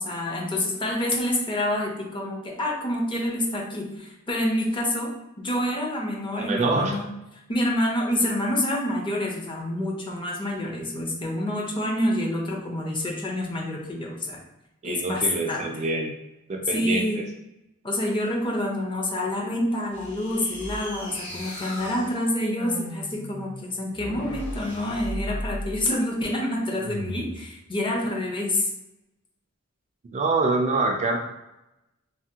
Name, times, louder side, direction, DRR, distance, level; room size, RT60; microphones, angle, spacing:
voice 1, 0.0-7.1 7.5-14.4 14.8-15.7 16.7-17.2 17.8-28.7, left 1 dB, 25° left, 0 dB, 0.5 m, -27 dB
voice 2, 6.4-6.9 14.8-16.1 16.5-17.2 30.1-31.2, right 3 dB, 35° right, 1 dB, 0.3 m, -25 dB
sound 1, 19.9-25.8 26.7-27.4, equal, 65° left, 1.3 m, -36 dB
3.3 x 2.1 x 2.7 m, 0.91 s
head